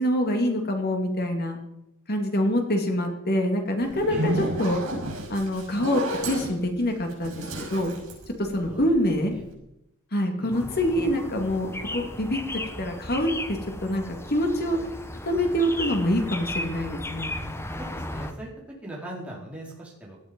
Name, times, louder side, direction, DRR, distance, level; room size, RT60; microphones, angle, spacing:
voice 1, 0.0-1.6 2.1-4.8 5.3-7.9 8.4-9.3 10.1-12.4 12.8-14.8 15.2-17.3, equal, 45° left, 4 dB, 2.5 m, -25 dB
Zipper (clothing), 3.8-9.1, right 1 dB, 80° right, 5.6 m, -32 dB
sound 1, 10.5-18.3, left 1 dB, 10° left, 1.0 m, -35 dB
voice 2, 17.8-18.5 18.8-20.2, right 1 dB, 5° right, -4 dB, 4.5 m, -39 dB
17.5 x 12.0 x 5.4 m, 0.86 s
head